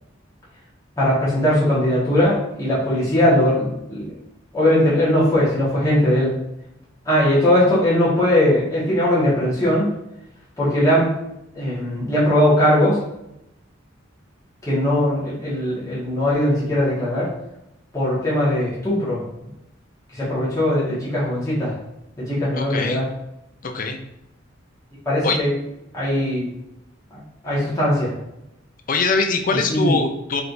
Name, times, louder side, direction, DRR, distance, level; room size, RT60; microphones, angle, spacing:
voice 1, 1.0-4.1 4.5-6.4 7.0-9.9 10.6-11.1 11.5-13.0 14.6-17.3 17.9-19.2 20.1-21.8 22.2-23.1 25.0-25.6 25.9-26.5 27.1-28.1 29.7-30.0, left 1 dB, 15° left, -9 dB, 1.6 m, -19 dB
voice 2, 22.5-23.0 23.6-24.0 25.2-25.4 28.9-30.4, left 4 dB, 45° left, 4 dB, 0.5 m, -22 dB
4.9 x 3.3 x 2.6 m, 0.85 s
head